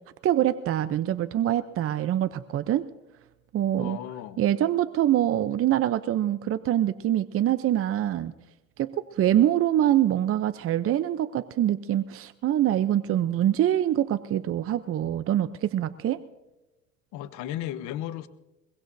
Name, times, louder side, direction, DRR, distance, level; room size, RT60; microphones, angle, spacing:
voice 1, 0.2-2.9 3.5-4.0 4.4-8.3 8.8-16.2, right 12 dB, 50° right, 12 dB, 0.7 m, -24 dB
voice 2, 3.8-4.4 17.1-18.3, left 12 dB, 80° left, 13 dB, 1.0 m, -35 dB
23.0 x 21.5 x 2.7 m, 1.0 s
supercardioid pair, 85°, 29 cm